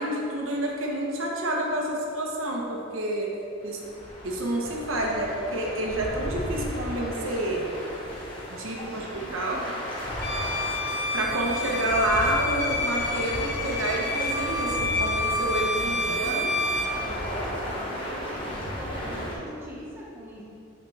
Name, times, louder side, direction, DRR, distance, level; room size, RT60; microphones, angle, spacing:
voice 1, 0.0-3.3 3.6-3.8 4.2-7.8 8.5-9.6 11.1-16.5, right 1 dB, 90° right, -2 dB, 1.2 m, -28 dB
sound 1, 3.6-19.3, equal, 25° left, 1.4 m, -35 dB
voice 2, 8.7-9.7 11.3-12.0 15.7-20.4, equal, 10° right, -6 dB, 1.4 m, -43 dB
Bowed string instrument, 10.2-17.0, left 2 dB, 55° left, 0.6 m, -29 dB
9.2 x 5.7 x 3.4 m, 2.7 s
head